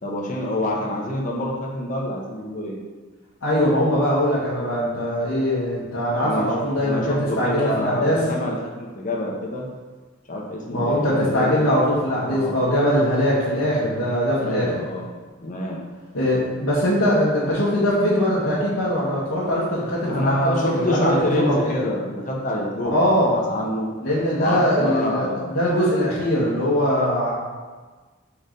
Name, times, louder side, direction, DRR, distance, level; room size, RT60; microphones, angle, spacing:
voice 1, 0.0-2.8 6.2-6.5 6.9-9.7 10.3-11.8 12.2-12.5 14.4-15.1 15.4-15.8 20.1-23.9 24.4-25.5, left 1 dB, 40° left, -2 dB, 1.1 m, -26 dB
voice 2, 3.4-8.2 10.7-14.7 16.1-21.8 22.9-23.4 24.0-27.3, equal, 85° left, -10 dB, 1.6 m, -21 dB
4.8 x 4.4 x 5.2 m, 1.4 s
head